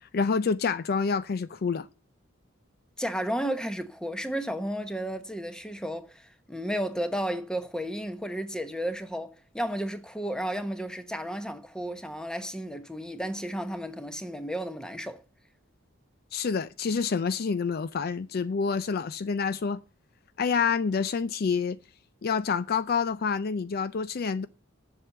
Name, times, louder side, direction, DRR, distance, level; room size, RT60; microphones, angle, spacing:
voice 1, 0.0-1.9 16.3-19.8 20.4-21.8 22.2-24.5, left 5 dB, 50° left, 0.4 m, -27 dB
voice 2, 3.0-15.2, equal, 5° left, 1.0 m, -33 dB
7.7 x 7.2 x 7.9 m
head